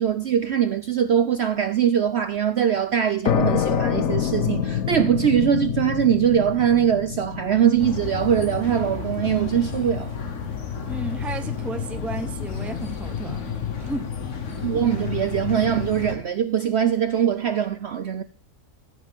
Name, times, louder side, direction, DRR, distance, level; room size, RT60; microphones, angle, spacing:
voice 1, 0.0-10.1 14.6-18.2, right 9 dB, 60° right, 0.7 m, -22 dB
sound 1, 3.2-10.6, left 9 dB, 70° left, 1.3 m, -27 dB
sound 2, 7.8-16.2, left 7 dB, 55° left, 1.5 m, -31 dB
voice 2, 10.8-13.5 13.8-14.1 14.5-14.6, right 2 dB, ahead, 0.6 m, -33 dB
15.0 x 6.5 x 3.6 m
omnidirectional pair, 1.6 m